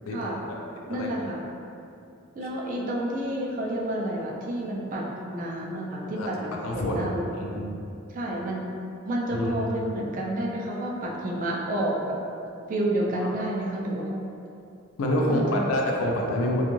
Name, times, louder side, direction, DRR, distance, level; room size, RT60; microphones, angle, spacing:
voice 1, 0.9-1.4 2.3-7.5 8.1-8.7 9.0-12.2 12.7-14.2 15.2-15.7, right 1 dB, 40° right, -3 dB, 0.4 m, -30 dB
voice 2, 6.6-6.9 7.4-7.6 9.3-9.6 13.2-13.4 15.0-16.7, left 1 dB, 90° left, 0 dB, 0.4 m, -26 dB
2.5 x 2.3 x 3.0 m, 2.6 s
head